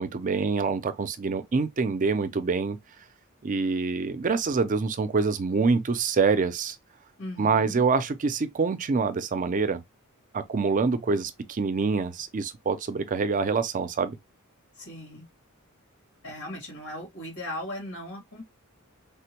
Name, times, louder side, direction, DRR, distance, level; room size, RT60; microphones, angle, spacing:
voice 1, 0.0-2.8 3.4-6.8 7.4-9.8 10.3-14.2, right 4 dB, 40° right, 0.4 m, -26 dB
voice 2, 7.2-7.8 14.8-15.2 16.2-18.4, left 1 dB, 90° left, 2.1 m, -38 dB
3.5 x 2.1 x 2.9 m
head